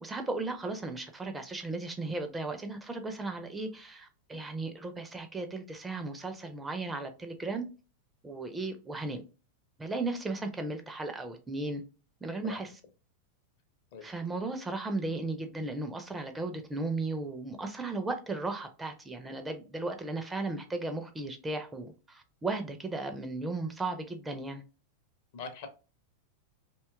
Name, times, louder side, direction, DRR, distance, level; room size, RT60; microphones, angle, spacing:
voice 1, 0.0-7.7 8.2-9.2 9.8-11.8 12.2-12.7 14.0-24.6, right 2 dB, 10° right, 0.4 m, -36 dB
voice 2, 25.3-25.7, left 5 dB, 50° left, 0.6 m, -42 dB
2.7 x 2.2 x 2.2 m
figure-of-eight pair, 90°, 0 cm